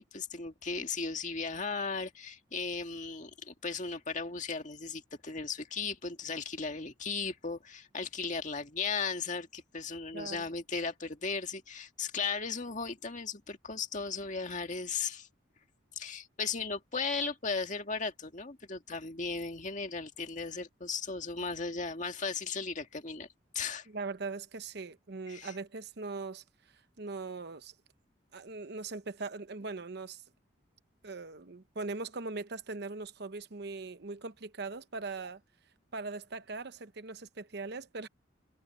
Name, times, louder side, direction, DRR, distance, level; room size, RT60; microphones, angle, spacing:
voice 1, 0.0-15.3 16.0-23.3 23.5-23.9 25.3-25.5, left 4 dB, 40° left, 2.0 m, -36 dB
voice 2, 10.1-10.4 23.9-26.4 27.0-27.7 28.3-30.2 31.0-35.4 35.9-38.1, right 3 dB, 60° right, 0.9 m, -40 dB
head